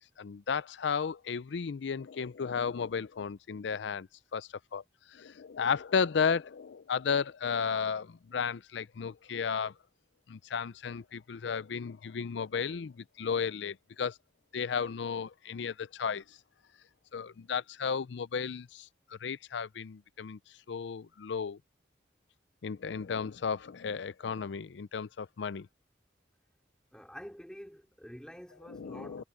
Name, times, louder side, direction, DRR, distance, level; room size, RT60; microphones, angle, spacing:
voice 1, 0.0-4.8 5.1-9.7 10.3-14.2 14.5-16.2 17.1-20.4 20.7-21.6 22.6-25.7 28.7-29.2, left 6 dB, 70° left, 0.5 m, -34 dB
voice 2, 26.9-29.3, equal, 5° left, 4.0 m, -47 dB
head